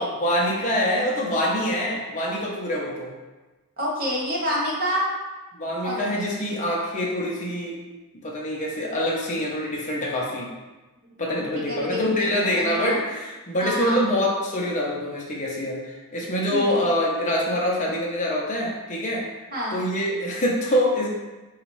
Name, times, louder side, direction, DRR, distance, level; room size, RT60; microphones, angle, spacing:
voice 1, 0.0-3.1 5.5-7.8 8.2-10.5 11.2-19.3 19.7-21.1, equal, 35° left, -3 dB, 0.7 m, -25 dB
voice 2, 3.8-5.1 5.8-6.3 11.3-13.0 13.6-14.0 16.5-16.8 19.5-19.8, equal, 45° right, -5 dB, 0.9 m, -28 dB
4.0 x 2.4 x 3.1 m, 1.2 s
head